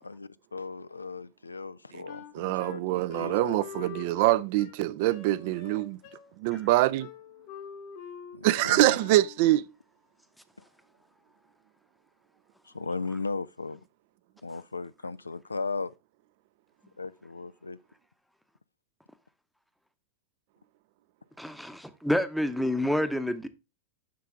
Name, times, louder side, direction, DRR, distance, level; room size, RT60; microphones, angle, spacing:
voice 1, 0.0-4.0 8.3-9.0 12.6-13.8 14.4-15.9 17.0-17.8, left 4 dB, 90° left, 0.3 m, -37 dB
Wind instrument woodwind instrument, 2.1-9.5, left 7 dB, 55° left, 1.3 m, -45 dB
voice 2, 2.3-6.0 6.4-7.1 8.4-9.6, right 16 dB, 55° right, 0.4 m, -24 dB
voice 3, 21.4-23.5, left 1 dB, ahead, 0.7 m, -28 dB
7.6 x 5.6 x 3.6 m
figure-of-eight pair, 95°, 0 cm